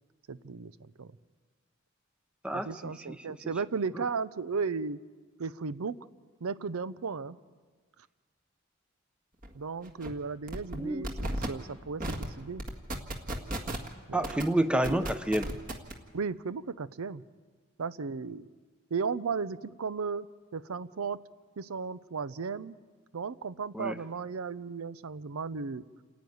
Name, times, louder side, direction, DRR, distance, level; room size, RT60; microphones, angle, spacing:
voice 1, 0.3-1.1 2.5-5.0 5.4-5.9 6.4-7.4 9.5-12.6 14.1-14.3 16.1-17.2 17.8-18.5 18.9-20.3 20.5-21.2 21.6-22.8 23.1-25.8, right 5 dB, 90° right, 16 dB, 0.6 m, -35 dB
voice 2, 2.4-2.9 10.8-11.1 14.1-15.5 23.7-23.9, right 1 dB, 5° right, 10 dB, 0.7 m, -28 dB
sound 1, 9.4-9.5 9.8-10.1 10.5-10.8 11.0-11.5 12.0-12.2 12.6-13.9 14.2-14.4 14.8-15.9, right 1 dB, 40° right, 1.8 m, -34 dB
28.5 x 10.5 x 9.4 m, 1.5 s
head